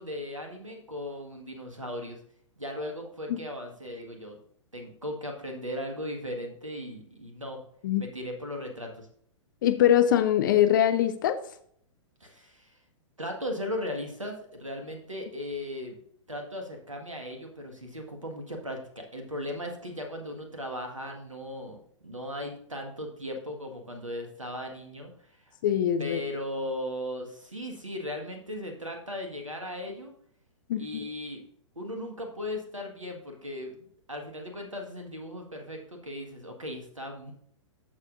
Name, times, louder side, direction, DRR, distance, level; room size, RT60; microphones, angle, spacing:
voice 1, 0.0-2.2 2.6-4.4 4.7-7.6 8.0-9.1 12.2-12.8 13.2-16.0 16.3-21.8 22.0-25.6 26.0-30.1 30.8-31.4 31.8-33.8 34.1-37.3, left 1 dB, 85° right, 3 dB, 1.7 m, -37 dB
voice 2, 9.6-11.4 25.6-26.2 30.7-31.0, left 11 dB, 40° left, 11 dB, 0.5 m, -23 dB
13.5 x 4.9 x 2.6 m, 0.64 s
figure-of-eight pair, 110°, 16 cm